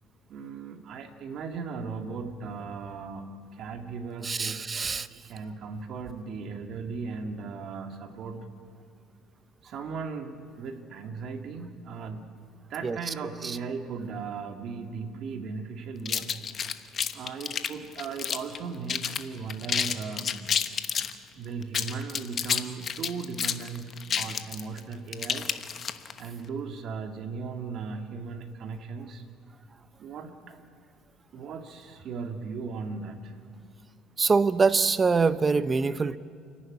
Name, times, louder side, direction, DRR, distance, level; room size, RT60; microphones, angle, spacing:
voice 1, 0.3-4.6 5.1-8.5 9.6-12.3 12.7-16.4 17.1-20.6 21.3-25.5 26.2-29.2 30.0-30.5 31.3-33.3, right 5 dB, 55° right, 6 dB, 2.2 m, -37 dB
voice 2, 4.2-5.1 12.8-13.0 34.2-36.2, right 4 dB, 25° right, 14 dB, 0.8 m, -24 dB
sound 1, 16.1-18.6 18.9-19.2 19.5-21.1 21.6-26.2, left 7 dB, 40° left, 1.1 m, -29 dB
29.0 x 11.5 x 9.7 m, 2.4 s
cardioid pair, 120°, 0 cm